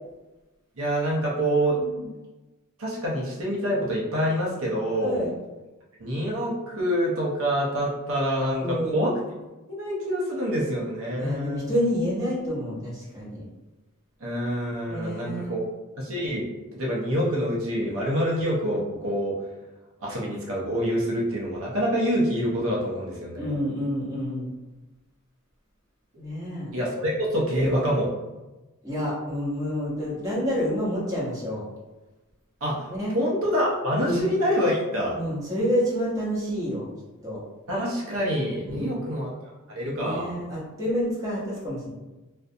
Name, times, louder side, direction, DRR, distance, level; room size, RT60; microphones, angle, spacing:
voice 1, 0.8-1.8 2.8-5.2 6.0-9.2 9.7-11.6 14.2-15.6 16.0-19.4 20.0-23.7 26.7-28.1 32.6-32.9 33.1-35.2 37.7-39.3 39.7-40.3, equal, 65° right, -4 dB, 0.6 m, -26 dB
voice 2, 5.0-5.3 8.6-9.0 11.2-13.4 14.9-15.5 23.3-24.5 26.2-26.7 28.8-31.6 32.9-33.1 34.0-34.2 35.1-36.9 37.2-37.4 38.7-39.0 40.0-41.9, equal, 15° right, -8 dB, 0.9 m, -28 dB
2.4 x 2.1 x 2.6 m, 1.1 s
head